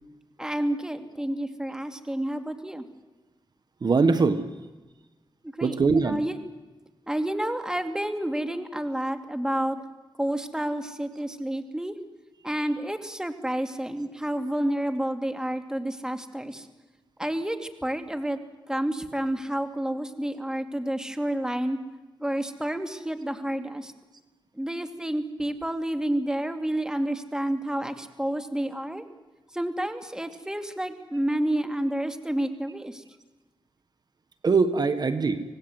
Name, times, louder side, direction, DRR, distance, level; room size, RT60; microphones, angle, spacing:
voice 1, 0.4-2.8 5.6-6.4 7.1-9.8 10.2-11.9 12.4-16.7 17.2-18.4 18.7-21.8 22.2-23.9 24.6-29.0 29.5-33.0, right 1 dB, 5° right, 7 dB, 2.6 m, -29 dB
voice 2, 3.8-4.5 5.6-6.2 34.4-35.4, right 4 dB, 50° right, 10 dB, 1.5 m, -22 dB
26.0 x 18.5 x 8.0 m, 1.2 s
cardioid pair, 65°, 9 cm